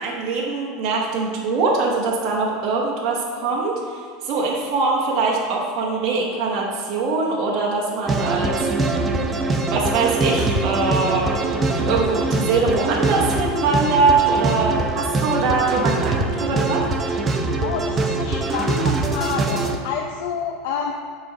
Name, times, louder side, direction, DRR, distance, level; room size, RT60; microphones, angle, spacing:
voice 1, 0.0-8.7 9.7-11.4 11.7-16.9, right 4 dB, 40° right, -3 dB, 1.1 m, -22 dB
sound 1, 8.1-19.8, right 3 dB, 15° right, 0.5 m, -23 dB
voice 2, 17.6-20.9, left 6 dB, 75° left, 2 dB, 0.5 m, -28 dB
6.8 x 4.2 x 6.0 m, 2.2 s
supercardioid pair, 170°, 0 cm